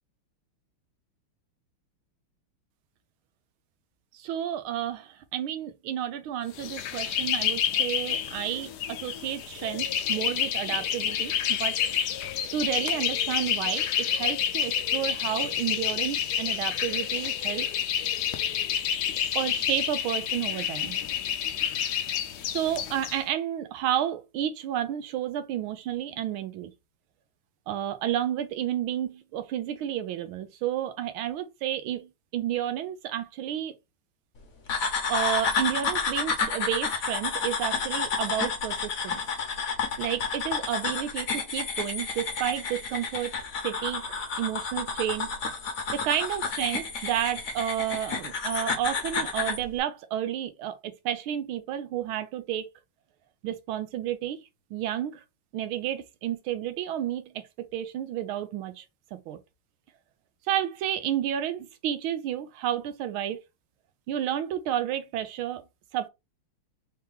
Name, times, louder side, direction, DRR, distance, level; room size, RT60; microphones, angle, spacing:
voice 1, 4.1-8.7 9.0-11.8 12.5-17.7 19.3-21.0 22.5-26.7 27.7-33.7 35.1-39.2 40.0-43.3 43.6-45.3 45.9-52.7 53.4-54.4 54.7-55.2 55.5-57.5 57.7-58.8 59.1-59.4 60.5-63.4 64.1-65.6 65.9-66.1, right 11 dB, 80° right, 1.5 m, -31 dB
sound 1, 6.5-23.2, left 9 dB, 75° left, 0.9 m, -29 dB
sound 2, 34.7-49.6, left 5 dB, 50° left, 1.2 m, -30 dB
4.5 x 3.0 x 3.4 m
omnidirectional pair, 2.3 m